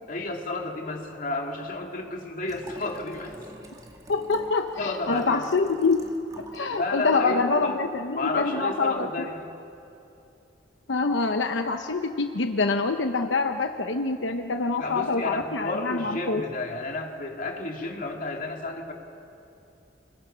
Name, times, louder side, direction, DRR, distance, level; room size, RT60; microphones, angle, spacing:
voice 1, 0.1-3.3 4.8-5.7 6.7-7.8 8.1-9.5 14.8-18.9, left 2 dB, 45° left, 1 dB, 2.6 m, -32 dB
Liquid, 2.4-6.7 7.0-7.1, right 1 dB, 20° right, 2.2 m, -47 dB
voice 2, 4.1-6.1 6.5-9.1 10.9-16.5, left 3 dB, 85° left, 6 dB, 0.9 m, -25 dB
28.5 x 21.5 x 5.6 m, 2.7 s
head